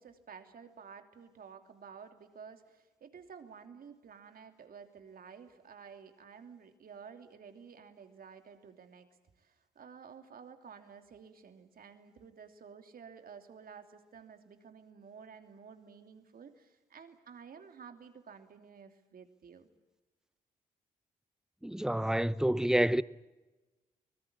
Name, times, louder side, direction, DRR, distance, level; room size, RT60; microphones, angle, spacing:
voice 1, 0.0-9.1 9.4-19.7, right 6 dB, 60° right, 2.9 m, -52 dB
voice 2, 21.6-23.0, right 1 dB, 5° right, 0.9 m, -28 dB
24.5 x 20.5 x 8.8 m
hypercardioid pair, 40°, 17 cm